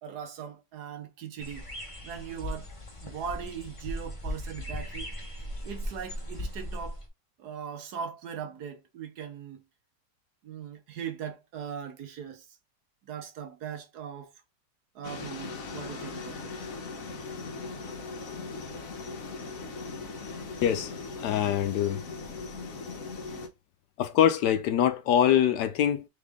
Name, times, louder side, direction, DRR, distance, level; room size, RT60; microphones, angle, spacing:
voice 1, 0.0-1.6 2.0-2.7 3.0-5.1 5.6-7.0 7.4-9.6 10.4-12.6 13.1-14.3 14.9-16.7, right 8 dB, 65° right, 1.3 m, -39 dB
sound 1, 1.4-7.1, left 1 dB, 25° left, 0.8 m, -38 dB
sound 2, 15.0-23.5, left 4 dB, 55° left, 1.2 m, -39 dB
voice 2, 21.2-22.0 24.0-26.1, left 10 dB, 75° left, 1.1 m, -24 dB
3.7 x 3.6 x 3.5 m
omnidirectional pair, 1.9 m